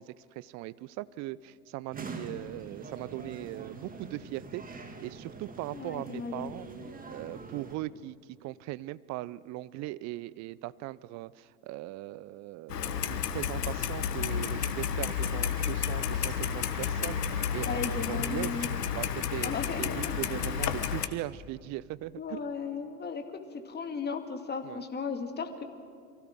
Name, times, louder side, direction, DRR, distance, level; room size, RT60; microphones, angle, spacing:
voice 1, 0.0-6.7 7.1-18.7 18.9-22.4 24.6-24.8, right 17 dB, 35° right, 20 dB, 0.6 m, -39 dB
sound 1, 1.9-7.8, right 3 dB, 15° right, 2.2 m, -44 dB
voice 2, 5.7-6.5 17.7-18.7 19.4-20.1 22.2-23.2 23.7-25.6, left 5 dB, 20° left, 5 dB, 2.0 m, -35 dB
Clock, 12.7-21.1, left 8 dB, 75° left, 1.3 m, -31 dB
sound 2, 14.3-21.0, right 7 dB, 60° right, 3.5 m, -52 dB
30.0 x 23.5 x 3.7 m, 2.3 s
figure-of-eight pair, 85°, 47 cm